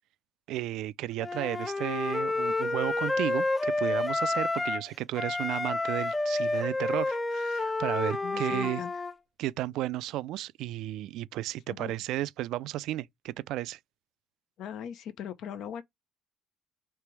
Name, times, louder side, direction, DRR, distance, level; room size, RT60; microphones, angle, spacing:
voice 1, 0.5-8.8 9.4-13.8, right 15 dB, 80° right, 0.3 m, -33 dB
Wind instrument woodwind instrument, 1.2-4.9 5.1-9.1, left 2 dB, 20° left, 0.4 m, -29 dB
voice 2, 8.2-8.9 11.7-12.0 14.6-15.8, left 9 dB, 70° left, 0.8 m, -40 dB
3.3 x 3.0 x 4.6 m
supercardioid pair, 85°, 0 cm